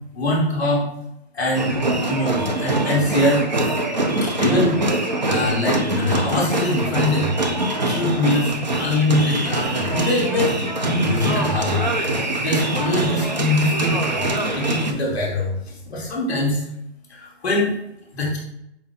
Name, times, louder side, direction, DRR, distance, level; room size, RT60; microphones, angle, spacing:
voice 1, 0.1-0.9 1.3-1.8 2.1-3.5 4.2-7.4 7.9-14.3 14.5-16.6 17.1-17.7 18.1-18.4, left 1 dB, 5° left, -9 dB, 0.7 m, -23 dB
sound 1, 1.5-14.9, right 2 dB, 40° right, 0.4 m, -23 dB
4.3 x 2.5 x 3.9 m, 0.82 s
hypercardioid pair, 170°, 34 cm